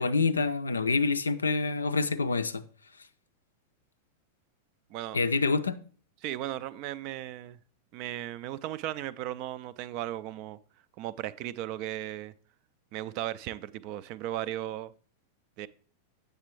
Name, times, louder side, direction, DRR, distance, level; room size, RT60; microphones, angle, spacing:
voice 1, 0.0-2.6 5.1-5.8, left 4 dB, 75° left, 0.4 m, -27 dB
voice 2, 6.2-7.6 7.9-10.6 11.0-12.3 12.9-14.9 15.6-15.7, right 13 dB, 45° right, 0.3 m, -36 dB
8.1 x 6.5 x 3.0 m
figure-of-eight pair, 90°, 0 cm